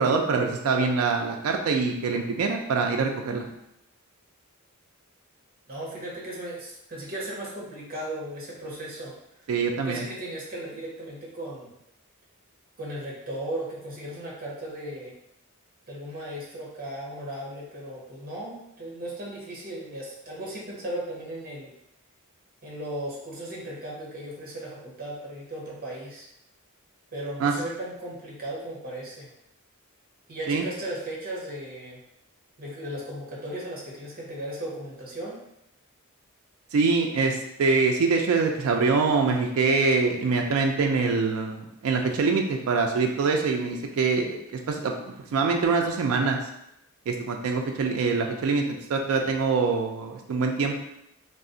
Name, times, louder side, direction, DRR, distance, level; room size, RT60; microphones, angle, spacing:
voice 1, 0.0-3.5 9.5-10.0 27.4-27.5 30.5-30.7 36.7-46.4 47.1-48.6 48.9-50.8, right 4 dB, 75° right, 3 dB, 0.3 m, -24 dB
voice 2, 5.7-9.1 9.8-11.7 12.8-15.1 15.9-21.7 22.6-26.3 27.1-29.3 30.3-32.0 32.6-35.4, right 1 dB, 45° right, -4 dB, 0.8 m, -36 dB
2.4 x 2.0 x 3.7 m, 0.81 s
head